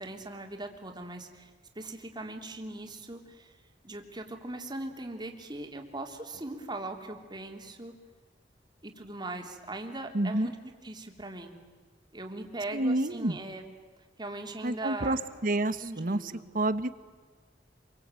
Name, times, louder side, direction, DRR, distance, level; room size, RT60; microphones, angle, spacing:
voice 1, 0.0-3.6 3.8-7.9 8.8-11.6 12.1-13.7 14.2-15.1 15.8-16.5, right 2 dB, 25° right, 4 dB, 3.3 m, -40 dB
voice 2, 10.1-10.5 12.7-13.4 14.6-17.1, right 1 dB, 50° right, 13 dB, 1.3 m, -29 dB
27.5 x 23.0 x 9.1 m, 1.4 s
head